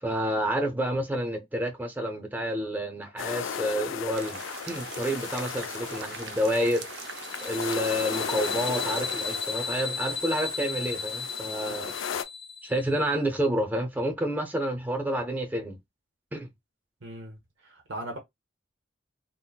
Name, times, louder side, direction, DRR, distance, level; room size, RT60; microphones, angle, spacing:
voice 1, 0.0-11.9 12.6-15.8 16.3-16.5, equal, 10° right, 0.5 m, -29 dB
sound 1, 3.2-12.2, left 7 dB, 85° left, 0.4 m, -36 dB
sound 2, 4.1-9.4, right 6 dB, 60° right, 0.5 m, -42 dB
sound 3, 7.1-13.0, left 5 dB, 60° left, 1.9 m, -35 dB
voice 2, 17.0-18.2, right 1 dB, 85° right, 0.8 m, -39 dB
3.8 x 2.0 x 2.2 m
head